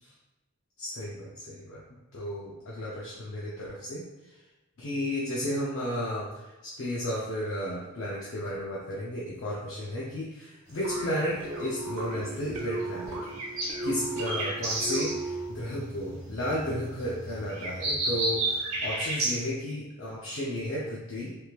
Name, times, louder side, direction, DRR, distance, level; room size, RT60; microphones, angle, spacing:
voice 1, 0.8-1.8 2.1-4.3 4.8-13.2 13.8-21.4, equal, 60° left, -6 dB, 0.6 m, -33 dB
sound 1, 10.7-19.4, right 2 dB, 65° right, 1.3 m, -33 dB
sound 2, 10.8-15.6, right 2 dB, 85° right, 0.7 m, -35 dB
3.4 x 3.0 x 2.3 m, 1.1 s
head